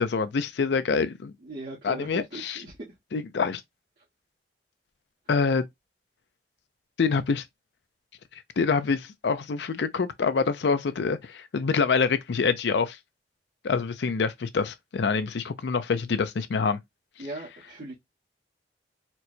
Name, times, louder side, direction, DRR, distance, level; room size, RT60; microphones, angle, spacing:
voice 1, 0.0-1.3 1.8-2.6 3.1-3.6 5.3-5.6 7.0-7.4 8.6-13.0 13.6-16.8, left 5 dB, 75° left, 0.4 m, -26 dB
voice 2, 1.4-2.8 17.2-17.9, right 2 dB, 80° right, 1.4 m, -39 dB
4.4 x 2.2 x 2.7 m
head